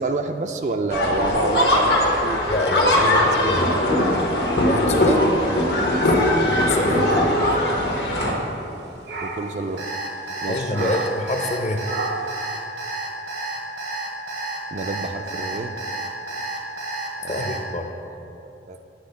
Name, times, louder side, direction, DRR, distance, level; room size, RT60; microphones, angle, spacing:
voice 1, 0.0-1.9 2.2-2.4 2.8-3.6 6.9-7.1 9.2-9.8 10.4-11.0 14.7-15.8 17.2-18.8, right 3 dB, 40° right, 6 dB, 0.3 m, -29 dB
sound 1, 0.9-8.3, left 1 dB, 75° left, 1.2 m, -20 dB
voice 2, 2.5-3.7 4.6-5.4 6.5-7.1 10.5-11.9 17.3-17.9, left 2 dB, 40° left, 5 dB, 0.6 m, -26 dB
sound 2, 6.3-8.8 9.1-9.6 10.7-11.3 11.8-12.4, right 2 dB, 75° right, 0.8 m, -31 dB
Alarm, 9.8-17.6, right 2 dB, 90° right, 1.2 m, -30 dB
9.5 x 3.5 x 6.9 m, 2.9 s
head